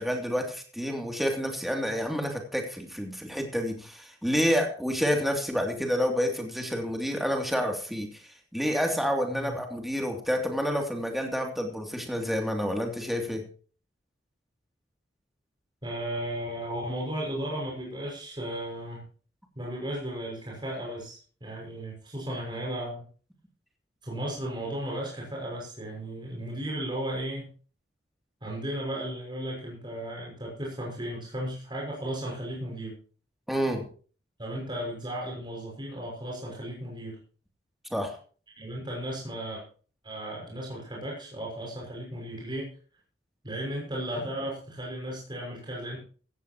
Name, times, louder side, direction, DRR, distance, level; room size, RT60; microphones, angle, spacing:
voice 1, 0.0-8.2 8.5-13.4 33.5-33.8 37.9-38.1, equal, ahead, 3 dB, 2.9 m, -29 dB
voice 2, 15.8-19.1 19.5-23.1 24.0-27.5 28.4-32.9 34.4-37.2 38.5-39.6 40.0-42.7 43.4-46.0, right 1 dB, 25° right, -3 dB, 6.3 m, -35 dB
15.5 x 15.5 x 3.1 m, 0.39 s
head